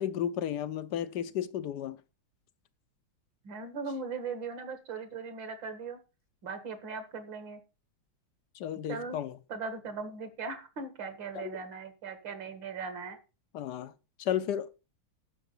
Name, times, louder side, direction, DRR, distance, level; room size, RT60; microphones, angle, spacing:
voice 1, 0.0-2.0 8.5-9.3 11.3-11.6 13.5-13.9 14.2-14.8, left 10 dB, 65° left, 1.1 m, -33 dB
voice 2, 3.4-6.0 6.4-7.6 8.9-9.2 9.5-13.2, right 4 dB, 65° right, 2.5 m, -39 dB
11.0 x 6.5 x 5.5 m
omnidirectional pair, 2.3 m